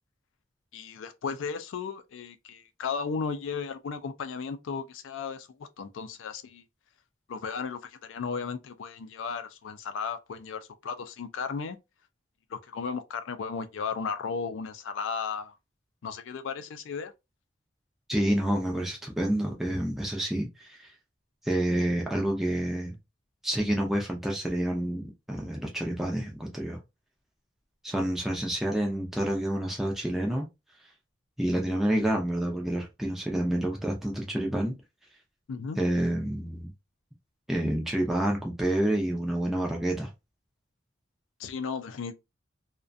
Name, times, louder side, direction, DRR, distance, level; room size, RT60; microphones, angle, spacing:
voice 1, 0.7-6.6 7.3-11.8 12.5-15.6 16.0-17.1 35.5-35.8 41.4-42.2, left 5 dB, 85° left, 0.4 m, -35 dB
voice 2, 18.1-20.9 21.4-23.0 23.4-26.8 27.8-30.5 31.4-34.7 35.8-36.7 37.5-40.1, right 1 dB, ahead, 0.4 m, -28 dB
2.3 x 2.1 x 2.5 m
head